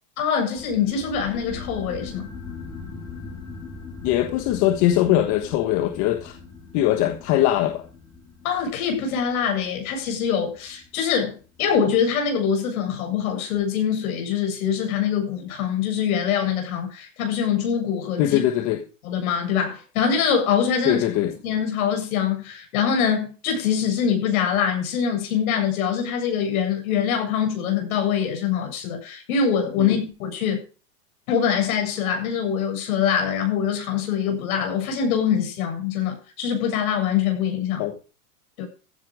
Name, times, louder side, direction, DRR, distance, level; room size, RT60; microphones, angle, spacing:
voice 1, 0.2-2.3 8.4-18.4 19.0-21.0 21.4-30.6 31.3-37.8 38.6-38.7, left 7 dB, 65° left, 7.9 m, -24 dB
sound 1, 0.6-11.7, left 4 dB, 10° left, 4.1 m, -41 dB
voice 2, 4.0-6.4 6.7-7.8 18.2-18.8 20.8-21.3 29.8-30.0 37.8-37.9, left 13 dB, 40° left, 1.4 m, -21 dB
15.0 x 10.0 x 5.0 m
supercardioid pair, 145°, 46 cm